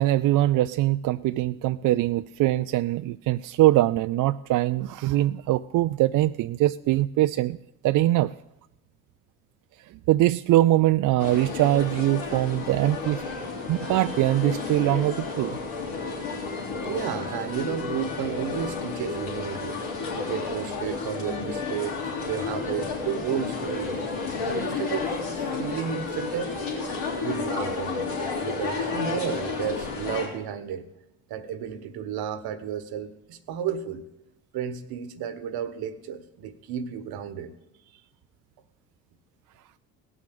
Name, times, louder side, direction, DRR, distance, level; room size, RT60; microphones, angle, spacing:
voice 1, 0.0-7.6 7.8-8.3 10.1-13.2 13.7-15.6, right 15 dB, 55° right, 12 dB, 0.4 m, -22 dB
sound 1, 11.2-30.3, left 4 dB, 85° left, 3.6 m, -31 dB
voice 2, 16.8-19.8 20.1-24.0 24.4-25.2 25.6-26.5 27.2-28.1 28.4-30.9 31.3-34.0 34.5-37.5, right 8 dB, 70° right, 12 dB, 1.2 m, -32 dB
17.0 x 6.3 x 8.6 m, 0.89 s
supercardioid pair, 65°, 39 cm